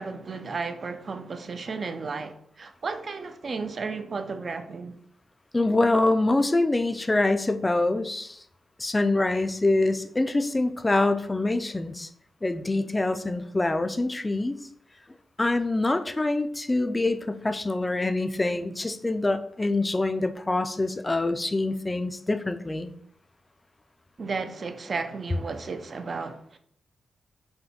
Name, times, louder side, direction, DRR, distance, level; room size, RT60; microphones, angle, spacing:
voice 1, 0.0-5.0 24.2-26.6, right 4 dB, 55° right, 0.4 m, -33 dB
voice 2, 5.5-8.4 8.8-12.1 12.4-14.6 15.4-22.9, left 2 dB, 25° left, 0.4 m, -25 dB
5.5 x 2.2 x 2.8 m
supercardioid pair, 55°, 0 cm